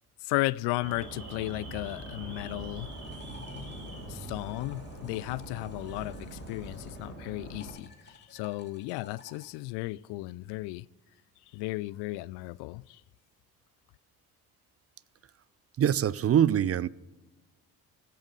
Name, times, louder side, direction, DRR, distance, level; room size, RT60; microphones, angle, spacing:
voice 1, 0.2-2.9 3.5-3.8 4.1-10.9 11.5-13.0, left 20 dB, 65° left, 0.5 m, -35 dB
Alarm, 0.8-7.7, right 1 dB, 85° right, 3.4 m, -42 dB
sound 1, 2.6-7.1 7.5-9.5, left 4 dB, 25° left, 2.8 m, -55 dB
voice 2, 15.8-16.9, right 9 dB, 35° right, 0.5 m, -24 dB
24.5 x 8.7 x 3.9 m
hypercardioid pair, 50°, 44 cm